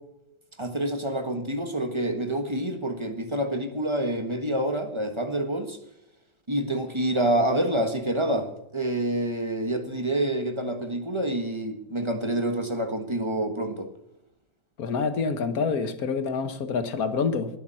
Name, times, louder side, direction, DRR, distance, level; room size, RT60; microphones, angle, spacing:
voice 1, 0.6-5.8 6.5-13.9, right 1 dB, 15° right, 7 dB, 1.3 m, -27 dB
voice 2, 14.8-17.5, left 5 dB, 55° left, 9 dB, 1.7 m, -27 dB
20.5 x 7.1 x 5.8 m, 0.85 s
omnidirectional pair, 2.0 m